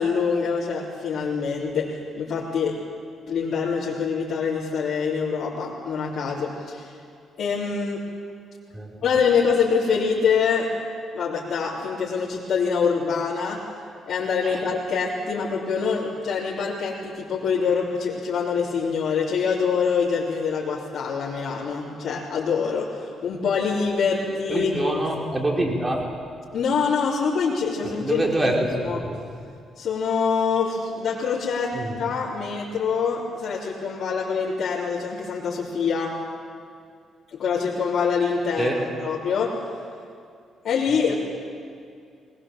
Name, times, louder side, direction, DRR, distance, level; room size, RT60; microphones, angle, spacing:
voice 1, 0.0-2.8 3.3-6.9 7.4-8.0 9.0-10.7 11.1-13.7 14.1-24.9 26.5-28.5 28.8-29.1 29.8-36.2 37.3-39.6 40.6-41.1, left 5 dB, 65° left, -8 dB, 3.7 m, -25 dB
voice 2, 24.5-26.1 28.0-29.2 31.7-32.0 38.6-38.8, right 1 dB, 20° right, 0 dB, 4.5 m, -25 dB
21.5 x 20.0 x 7.6 m, 2.4 s
cardioid pair, 90°, 0 cm